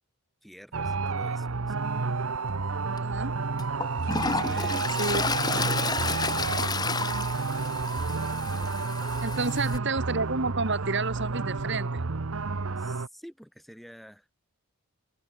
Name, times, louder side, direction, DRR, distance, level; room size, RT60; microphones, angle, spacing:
voice 1, 0.4-1.9 4.2-5.2 9.2-9.5 12.8-14.3, equal, ahead, 7.3 m, -49 dB
sound 1, 0.7-13.1, right 4 dB, 75° right, 0.9 m, -30 dB
Toilet flush, 2.9-3.0 3.6-9.8, left 4 dB, 20° left, 0.9 m, -31 dB
voice 2, 2.9-3.3 5.0-5.2 6.0-6.4 9.2-12.0, right 3 dB, 55° right, 2.4 m, -30 dB
head